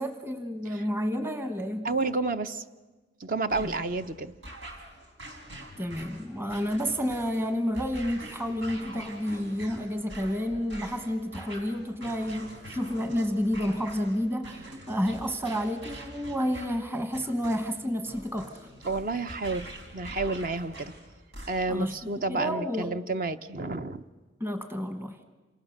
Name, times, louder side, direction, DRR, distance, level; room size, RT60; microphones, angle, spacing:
voice 1, 0.0-1.9 3.6-3.7 5.8-18.7 21.7-22.0 22.3-23.0 24.4-25.2, equal, 15° right, 7 dB, 1.2 m, -30 dB
voice 2, 1.8-2.6 3.2-4.3 18.8-20.9 21.5-24.1, right 3 dB, 45° right, 10 dB, 0.8 m, -30 dB
sound 1, 3.5-21.9, right 1 dB, 85° right, 4.1 m, -45 dB
27.5 x 27.5 x 6.5 m, 1.3 s
head